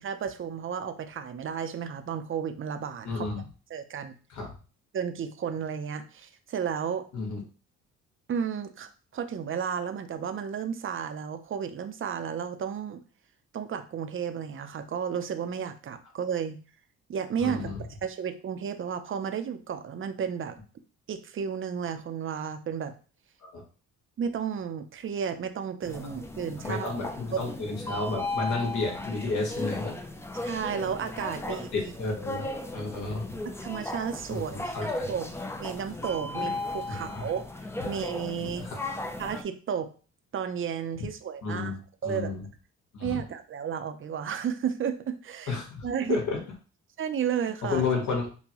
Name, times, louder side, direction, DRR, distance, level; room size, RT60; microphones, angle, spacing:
voice 1, 0.0-3.3 3.7-4.1 4.9-7.0 8.3-13.0 13.5-16.6 17.1-17.7 18.0-20.5 21.1-22.9 24.2-26.9 27.3-27.4 30.4-31.9 33.6-35.3 35.6-37.4 37.8-38.7 39.2-39.9 40.3-41.7 42.0-42.3 43.0-45.6 45.8-46.2 47.0-47.8, right 7 dB, 45° right, 8 dB, 0.6 m, -33 dB
voice 2, 3.0-3.4 4.3-4.5 7.1-7.4 17.4-17.8 23.4-23.6 26.6-29.9 31.7-32.5 32.7-33.2 34.3-35.1 37.1-37.3 38.6-38.8 41.4-41.7 42.0-42.4 42.9-43.2 45.5-46.4 47.7-48.3, left 3 dB, 75° left, 0 dB, 1.5 m, -31 dB
sound 1, 25.8-39.4, left 2 dB, 10° left, 0.5 m, -36 dB
5.4 x 2.2 x 3.0 m, 0.38 s
cardioid pair, 90°, 30 cm